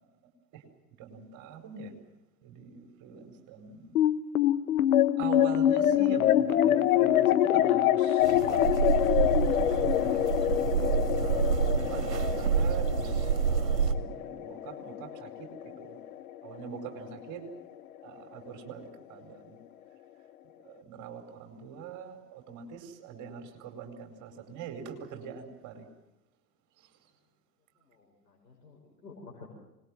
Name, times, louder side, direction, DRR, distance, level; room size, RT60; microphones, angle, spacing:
voice 1, 1.0-1.9 2.4-3.9 5.2-7.3 7.5-8.8 9.1-15.3 15.6-16.0 16.4-17.4 18.0-19.6 20.6-25.9, right 6 dB, 40° right, 5 dB, 5.0 m, -43 dB
sound 1, 4.0-16.6, left 11 dB, 60° left, 1.2 m, -26 dB
sound 2, 8.2-13.9, right 7 dB, 75° right, 2.0 m, -28 dB
voice 2, 27.8-29.5, left 3 dB, 75° left, -1 dB, 6.5 m, -51 dB
26.0 x 21.0 x 7.5 m, 0.92 s
figure-of-eight pair, 95°, 49 cm